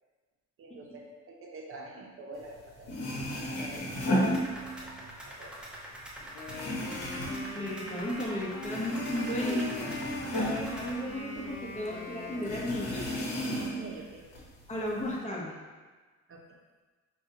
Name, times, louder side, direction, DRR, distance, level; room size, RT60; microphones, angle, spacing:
voice 1, 0.6-3.0 3.5-4.2 4.6-5.5 9.5-10.2 12.7-12.8 13.6-14.2 16.3-16.5, right 3 dB, 45° right, -1 dB, 0.7 m, -45 dB
sound 1, 2.6-2.7 2.8-5.1 5.4-8.3 8.6-11.6 11.9-12.0 12.5-13.9 14.3-15.1, equal, 55° left, 1.1 m, -33 dB
sound 2, 4.1-11.0, right 1 dB, 5° right, 0.7 m, -45 dB
Wind instrument woodwind instrument, 6.3-14.0, left 3 dB, 90° left, 0.7 m, -42 dB
voice 2, 7.5-9.7 10.3-13.1 14.7-15.5, left 1 dB, 20° left, -3 dB, 0.9 m, -34 dB
5.3 x 2.3 x 2.8 m, 1.4 s
cardioid pair, 105°, 30 cm